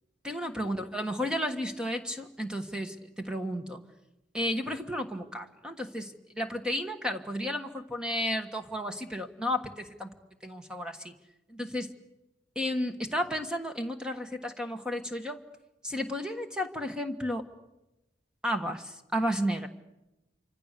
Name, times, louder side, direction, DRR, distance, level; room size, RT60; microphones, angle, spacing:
voice 1, 0.2-3.8 4.3-10.2 10.4-11.1 11.5-11.9 12.5-15.4 15.8-17.4 18.4-19.7, equal, 5° right, 5 dB, 1.4 m, -33 dB
28.0 x 25.5 x 6.7 m, 0.99 s
head